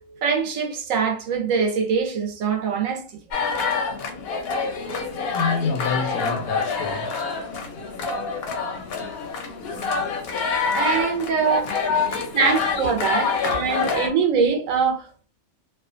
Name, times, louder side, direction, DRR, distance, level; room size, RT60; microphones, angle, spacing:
voice 1, 0.2-3.1 10.7-11.7 12.3-15.3, right 5 dB, 75° right, 1.0 m, -23 dB
sound 1, 3.3-14.1, left 4 dB, 60° left, 0.7 m, -27 dB
voice 2, 4.9-10.8 11.5-12.4 12.8-13.4, left 5 dB, 85° left, 1.0 m, -30 dB
2.7 x 2.2 x 2.4 m
omnidirectional pair, 1.4 m